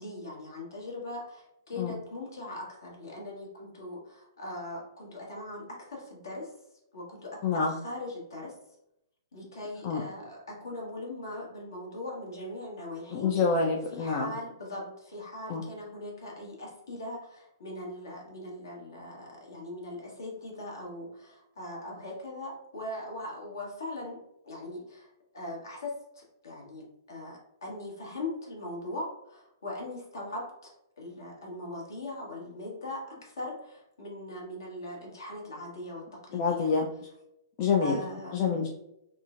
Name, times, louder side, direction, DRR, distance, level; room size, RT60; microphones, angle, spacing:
voice 1, 0.0-6.5 6.9-8.5 9.3-13.3 13.9-36.7 37.8-38.6, left 1 dB, 65° left, -2 dB, 1.2 m, -40 dB
voice 2, 7.4-7.7 9.8-10.0 13.1-14.3 15.5-15.6 36.3-36.9 37.6-38.0 38.3-38.7, left 5 dB, 40° left, 0 dB, 0.4 m, -26 dB
3.6 x 2.1 x 2.4 m, 0.83 s
figure-of-eight pair, 115°, 2 cm